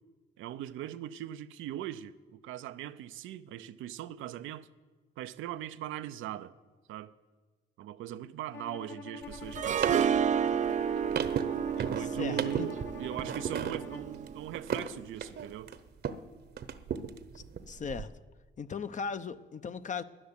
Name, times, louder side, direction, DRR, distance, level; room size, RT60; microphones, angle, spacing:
voice 1, 0.4-4.7 5.2-6.5 6.9-7.1 7.8-10.1 11.7-15.7, right 12 dB, 85° right, 0.6 m, -40 dB
Bowed string instrument, 8.5-14.1, left 6 dB, 65° left, 1.7 m, -47 dB
sound 1, 9.2-16.3 16.6-18.0, right 7 dB, 55° right, 1.0 m, -36 dB
Harp, 9.6-14.6, right 8 dB, 40° right, 0.4 m, -31 dB
voice 2, 12.0-12.7 17.3-18.2 18.6-20.0, left 6 dB, 40° left, 0.7 m, -38 dB
13.5 x 10.5 x 9.8 m
cardioid pair, 90°, 20 cm